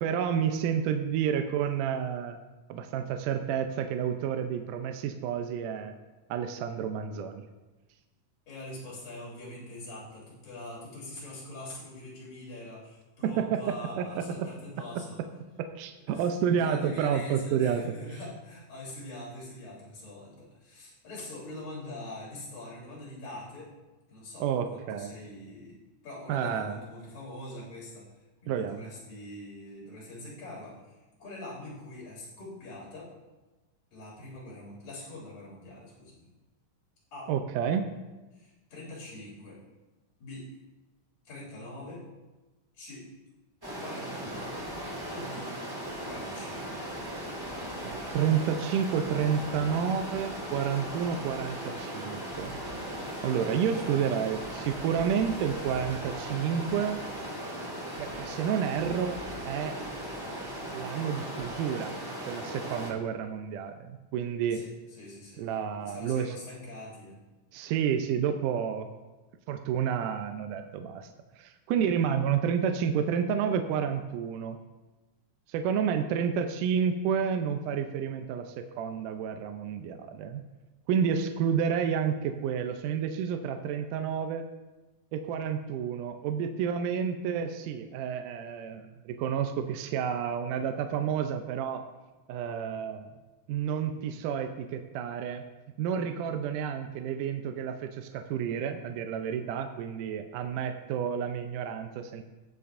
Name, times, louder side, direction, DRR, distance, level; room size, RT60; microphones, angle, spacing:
voice 1, 0.0-2.4 2.7-5.9 6.3-7.4 13.2-14.5 15.6-17.8 24.4-25.2 26.3-26.8 28.5-28.8 37.3-37.9 47.8-52.6 53.2-57.0 58.0-59.2 59.5-59.8 60.7-62.0 62.3-64.6 65.4-66.4 67.5-69.0 69.5-74.6 75.5-80.4 80.9-84.4 85.1-91.8 92.3-93.1 93.5-95.4 95.8-102.2, right 8 dB, 80° right, 6 dB, 2.0 m, -30 dB
voice 2, 8.5-15.2 16.1-23.7 24.1-25.8 26.0-28.1 28.4-33.1 33.9-36.3 37.1-37.3 38.3-39.6 40.2-40.5 41.2-42.0 42.7-43.1 43.8-44.5 45.1-45.5 46.0-46.8 53.7-53.9 64.5-65.4 65.8-67.2, left 1 dB, 70° left, -8 dB, 4.9 m, -43 dB
Stream, 43.6-62.9, equal, 10° right, 1.5 m, -38 dB
18.5 x 6.8 x 2.5 m, 1.1 s
omnidirectional pair, 4.0 m